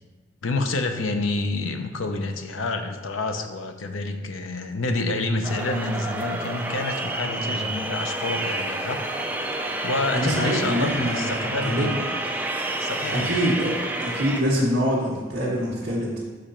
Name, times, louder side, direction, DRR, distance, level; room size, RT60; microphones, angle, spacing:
voice 1, 0.4-9.0 9.8-12.0 12.8-13.4, left 2 dB, 85° left, 6 dB, 0.7 m, -28 dB
sound 1, 5.4-14.4, right 2 dB, 10° right, 0.4 m, -29 dB
voice 2, 7.4-7.8 10.1-12.0 13.1-16.2, equal, 60° right, -6 dB, 1.5 m, -25 dB
6.2 x 5.1 x 4.3 m, 1.4 s
head